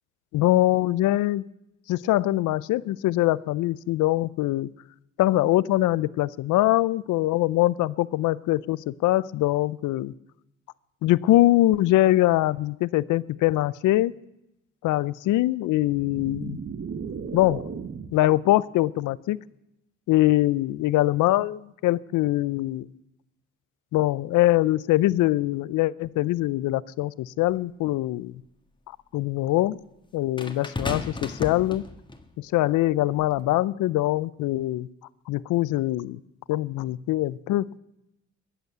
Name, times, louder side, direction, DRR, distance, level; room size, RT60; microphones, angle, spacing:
voice 1, 0.3-1.5 1.9-4.7 5.2-10.1 11.0-14.1 14.8-16.6 17.3-17.6 18.1-19.4 20.1-22.9 23.9-28.4 29.1-29.8 30.1-31.9 32.4-34.9 35.3-36.2 36.5-37.7, left 16 dB, 85° left, 20 dB, 0.6 m, -23 dB
sound 1, 15.8-18.3, right 6 dB, 45° right, 1.5 m, -36 dB
sound 2, 27.5-27.6 30.4-32.3 33.2-33.4, left 3 dB, 15° left, 1.6 m, -34 dB
22.0 x 8.2 x 8.0 m, 0.88 s
cardioid pair, 90°, 30 cm